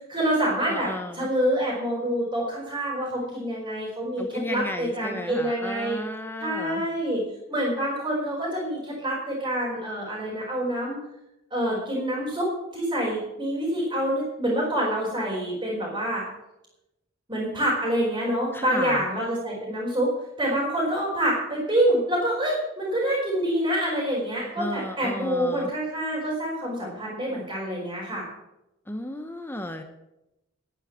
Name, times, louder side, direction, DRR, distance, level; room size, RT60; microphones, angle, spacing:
voice 1, 0.1-0.9 1.1-6.0 6.4-7.2 7.5-11.0 11.5-16.2 17.3-20.1 20.4-28.2, right 1 dB, 20° right, -8 dB, 4.5 m, -26 dB
voice 2, 0.7-1.3 3.2-3.4 4.2-6.9 18.5-19.0 24.6-25.7 28.9-29.8, left 1 dB, 10° left, 7 dB, 0.8 m, -34 dB
11.5 x 9.9 x 7.3 m, 0.90 s
head